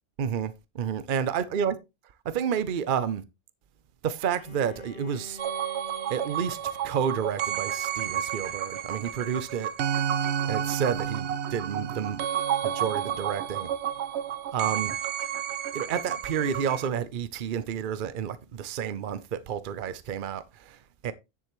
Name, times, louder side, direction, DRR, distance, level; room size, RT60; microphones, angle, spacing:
voice 1, 0.2-1.7 2.2-3.2 4.0-5.4 6.1-6.6 6.8-9.7 10.4-12.2 12.6-13.7 14.5-15.0 15.7-21.1, right 8 dB, 55° right, 0.8 m, -30 dB
Bowed string instrument, 4.3-9.2, left 3 dB, 65° left, 1.1 m, -49 dB
sound 1, 5.4-16.9, right 9 dB, 80° right, 1.0 m, -31 dB
9.9 x 7.3 x 3.0 m
omnidirectional pair, 1.1 m